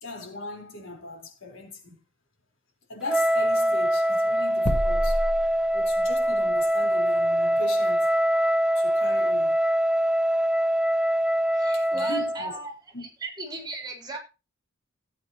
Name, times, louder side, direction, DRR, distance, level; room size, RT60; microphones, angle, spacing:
voice 1, 0.0-2.0 2.9-5.4 5.7-8.1 8.8-9.6 11.7-12.6 12.9-13.1, left 2 dB, 70° left, 4.1 m, -39 dB
Wind instrument woodwind instrument, 3.1-12.4, equal, 5° right, 0.7 m, -23 dB
sound 1, 4.7-6.3, equal, 40° left, 1.4 m, -29 dB
voice 2, 11.5-12.7 13.0-14.2, right 3 dB, 20° right, 3.4 m, -37 dB
17.0 x 8.7 x 2.9 m
head